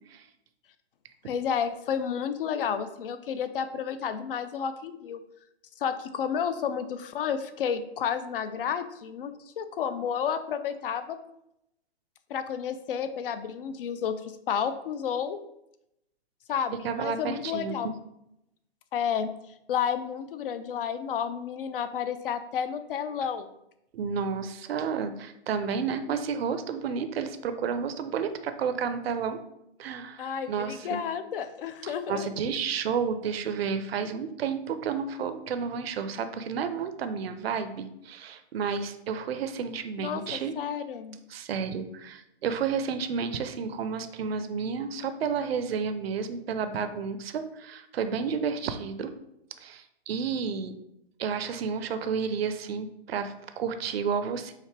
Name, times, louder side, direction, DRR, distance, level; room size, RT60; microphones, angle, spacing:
voice 1, 1.3-5.2 5.8-11.2 12.3-15.4 16.5-17.9 18.9-19.3 19.7-23.5 30.2-32.3 40.0-41.2, left 7 dB, 55° left, 11 dB, 0.5 m, -31 dB
voice 2, 16.8-17.8 23.9-29.4 29.8-31.0 31.8-40.5 41.3-49.1 49.6-50.8 51.2-54.5, right 6 dB, 65° right, 9 dB, 0.6 m, -31 dB
4.8 x 2.6 x 3.3 m, 0.81 s
hypercardioid pair, 135°, 32 cm